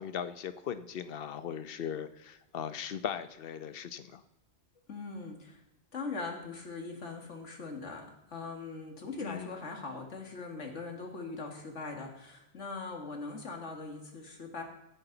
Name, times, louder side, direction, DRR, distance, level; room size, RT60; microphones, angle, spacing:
voice 1, 0.0-4.2 9.2-9.5, left 8 dB, 55° left, 11 dB, 0.9 m, -38 dB
voice 2, 4.9-5.6 5.9-8.1 8.3-14.6, left 3 dB, 75° left, 2 dB, 2.2 m, -41 dB
16.5 x 10.0 x 4.0 m, 0.90 s
omnidirectional pair, 1.2 m